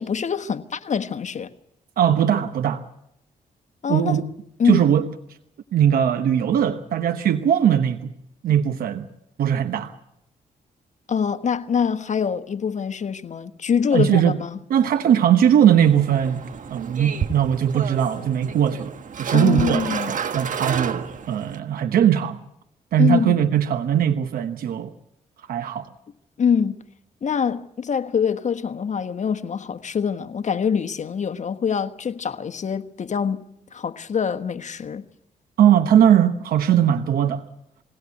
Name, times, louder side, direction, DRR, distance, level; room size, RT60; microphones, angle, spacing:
voice 1, 0.0-1.5 3.8-4.2 4.6-4.8 11.1-14.6 19.3-20.1 23.0-23.4 26.4-26.8 27.2-33.4 33.7-35.1, left 7 dB, 55° left, 1.3 m, -24 dB
voice 2, 2.0-2.8 3.9-4.3 4.6-5.1 5.7-8.1 8.4-9.1 9.4-9.9 13.9-14.4 14.7-22.4 22.9-24.9 25.5-25.9 35.6-37.4, right 9 dB, 80° right, 1.1 m, -20 dB
sound 1, 15.8-21.6, right 7 dB, 60° right, 1.5 m, -31 dB
21.5 x 17.0 x 8.4 m
cardioid pair, 70°, 15 cm